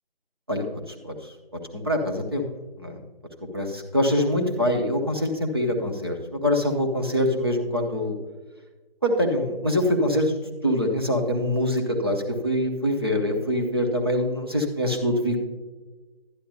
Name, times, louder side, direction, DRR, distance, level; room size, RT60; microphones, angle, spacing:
voice 1, 0.5-1.3 1.7-2.5 2.8-3.0 3.4-8.2 9.0-15.4, left 1 dB, 25° right, 1 dB, 0.8 m, -24 dB
11.5 x 9.8 x 2.7 m, 1.2 s
figure-of-eight pair, 160°, 31 cm